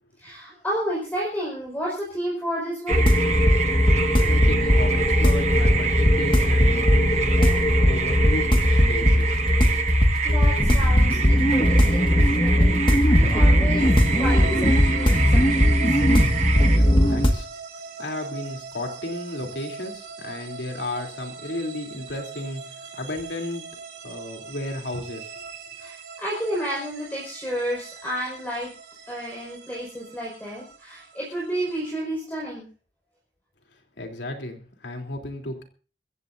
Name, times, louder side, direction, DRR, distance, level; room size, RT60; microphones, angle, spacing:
voice 1, 0.2-3.0 10.2-13.9 14.2-16.0 25.8-28.7 29.1-32.7, equal, 10° left, -5 dB, 5.5 m, -31 dB
sound 1, 2.9-17.3, equal, 30° left, 1.7 m, -19 dB
sound 2, 2.9-16.8, right 6 dB, 40° right, 1.5 m, -28 dB
voice 2, 4.2-9.4 16.7-17.5 18.0-23.7 24.0-25.4 34.0-35.6, left 1 dB, 80° left, 3 dB, 3.3 m, -34 dB
sound 3, 13.8-31.9, right 5 dB, 70° right, 4.0 m, -41 dB
24.0 x 15.0 x 2.7 m, 0.38 s
head